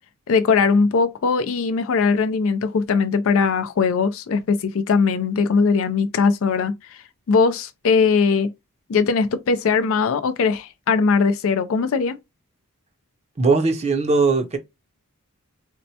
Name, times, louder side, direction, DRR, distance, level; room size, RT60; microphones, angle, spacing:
voice 1, 0.3-7.0 7.3-8.5 8.9-12.2, left 5 dB, 65° left, 0.4 m, -20 dB
voice 2, 13.4-14.6, right 4 dB, 30° right, 0.6 m, -19 dB
4.2 x 2.1 x 2.7 m
head